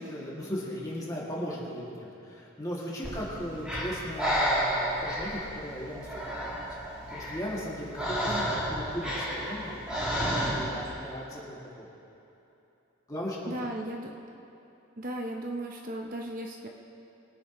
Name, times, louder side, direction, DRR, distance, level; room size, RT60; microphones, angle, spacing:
voice 1, 0.0-6.5 7.1-11.9 13.1-13.7, equal, 20° left, -6 dB, 2.4 m, -37 dB
Breathing, 3.0-10.9, equal, 5° right, 3.1 m, -31 dB
voice 2, 13.5-14.2 15.0-16.7, right 1 dB, 45° right, 1 dB, 0.9 m, -36 dB
22.5 x 9.5 x 3.1 m, 2.9 s
head